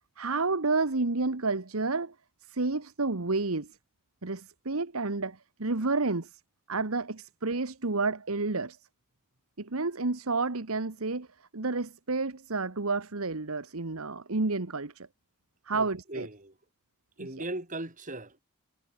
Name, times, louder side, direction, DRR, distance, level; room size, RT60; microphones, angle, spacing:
voice 1, 0.2-2.1 2.5-3.8 4.2-6.4 6.7-8.8 9.6-11.3 11.5-15.1 15.7-16.3 17.2-17.3, right 3 dB, 70° right, 1.4 m, -30 dB
voice 2, 15.7-16.5 17.2-18.4, right 2 dB, 35° right, 6.8 m, -38 dB
head